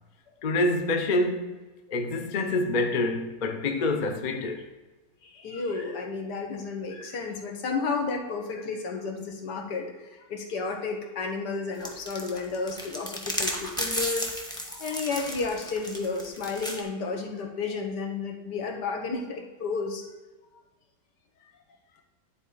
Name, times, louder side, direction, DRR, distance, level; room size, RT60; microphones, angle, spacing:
voice 1, 0.4-1.6 1.9-4.6, left 2 dB, 60° left, 0.4 m, -26 dB
voice 2, 5.2-20.1, left 4 dB, 80° left, 1.7 m, -32 dB
sound 1, 11.8-16.8, equal, 5° left, 0.6 m, -33 dB
9.9 x 4.2 x 3.9 m
omnidirectional pair, 1.8 m